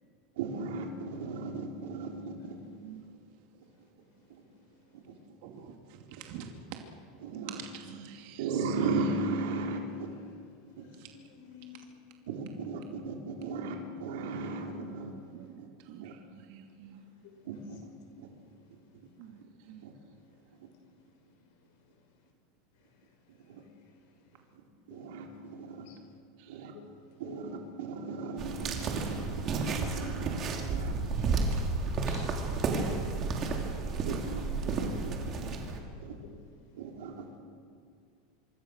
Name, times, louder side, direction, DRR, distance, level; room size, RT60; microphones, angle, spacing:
voice 1, 0.4-2.5 7.2-7.6 8.4-10.1 10.8-10.9 12.3-15.1 15.6-15.7 16.0-16.1 17.4-17.9 18.2-18.3 19.8-19.9 23.5-23.6 24.9-25.9 26.5-26.7 27.2-31.0 32.8-33.0 33.3-33.6 34.0-35.3 36.0-36.1 36.8-37.3, right 3 dB, 75° right, 1 dB, 4.0 m, -36 dB
voice 2, 2.7-3.0 5.4-6.8 7.3-8.9 11.0-11.1 14.8-17.0 19.2-19.9 26.4-26.7 31.2-31.7 32.0-32.1, right 8 dB, 50° right, 3 dB, 2.5 m, -48 dB
voice 3, 10.8-11.8 13.5-13.6 17.2-17.3 20.8-20.9 24.9-25.0 25.8-26.0 26.7-26.8 27.2-27.4 32.1-32.3 35.3-35.8 36.2-36.3, left 7 dB, 60° left, 4 dB, 5.8 m, -52 dB
sound 1, 28.4-35.8, right 4 dB, 25° right, 2.9 m, -32 dB
25.5 x 25.0 x 6.5 m, 2.2 s
supercardioid pair, 175°, 0 cm